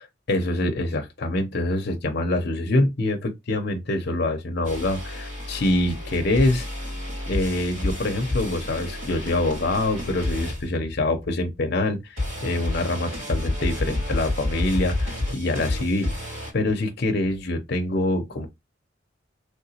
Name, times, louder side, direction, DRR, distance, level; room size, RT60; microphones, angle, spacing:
voice 1, 0.3-6.7 7.3-16.1 16.5-18.5, left 1 dB, 55° left, 0.6 m, -25 dB
sound 1, 4.6-11.3 12.2-16.5, left 2 dB, 75° right, 2.2 m, -30 dB
3.3 x 2.9 x 2.8 m
head